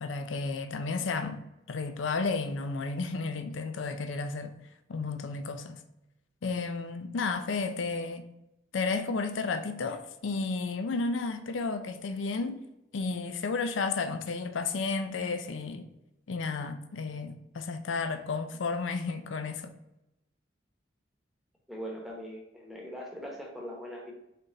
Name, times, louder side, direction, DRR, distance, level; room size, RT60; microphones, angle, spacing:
voice 1, 0.0-4.5 4.9-5.8 6.4-8.2 8.7-12.6 12.9-15.9 16.3-19.7, left 4 dB, 90° left, 0.5 m, -32 dB
voice 2, 21.7-24.1, equal, ahead, 1.0 m, -41 dB
4.2 x 3.3 x 3.8 m
head